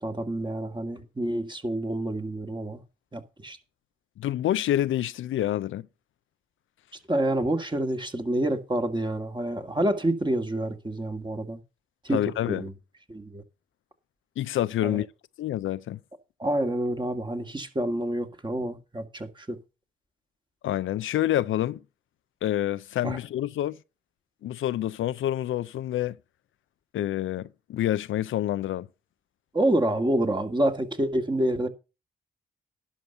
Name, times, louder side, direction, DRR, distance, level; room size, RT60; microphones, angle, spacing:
voice 1, 0.0-2.8 3.1-3.6 7.1-11.6 12.0-12.2 12.5-12.7 13.1-13.4 14.8-15.0 16.4-19.6 23.0-23.2 29.5-31.7, right 1 dB, 20° right, 2.0 m, -28 dB
voice 2, 4.2-5.9 12.1-12.6 14.4-15.1 15.4-16.0 20.6-21.8 22.4-23.8 24.4-26.2 26.9-28.9, left 12 dB, 75° left, 0.5 m, -27 dB
11.5 x 5.4 x 6.7 m
supercardioid pair, 50°, 21 cm